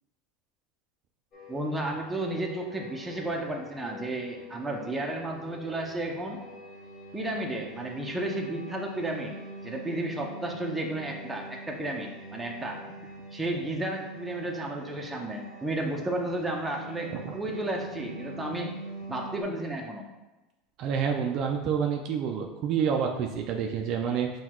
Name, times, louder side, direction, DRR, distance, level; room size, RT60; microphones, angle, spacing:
sound 1, 1.3-19.4, right 1 dB, 45° left, 1.3 m, -44 dB
voice 1, 1.5-6.4 7.1-9.4 9.6-12.8 13.3-18.8 19.1-20.1, right 1 dB, 10° right, 0 dB, 0.7 m, -33 dB
voice 2, 20.8-24.3, right 7 dB, 55° right, 3 dB, 0.4 m, -28 dB
5.6 x 2.3 x 3.0 m, 1.1 s
supercardioid pair, 110°, 0 cm